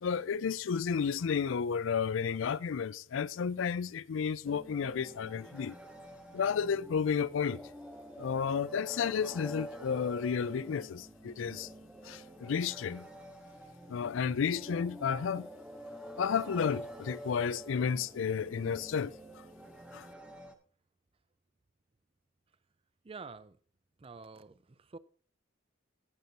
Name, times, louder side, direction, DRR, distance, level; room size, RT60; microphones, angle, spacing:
voice 1, 0.0-5.8 6.3-7.6 8.2-11.7 12.0-13.1 13.9-15.5 16.2-19.1 19.9-20.1, left 6 dB, 75° left, 0.4 m, -32 dB
sound 1, 4.4-20.5, equal, 5° right, 0.9 m, -48 dB
voice 2, 23.0-23.6 24.0-25.0, right 4 dB, 30° right, 0.4 m, -48 dB
18.5 x 6.7 x 2.8 m
head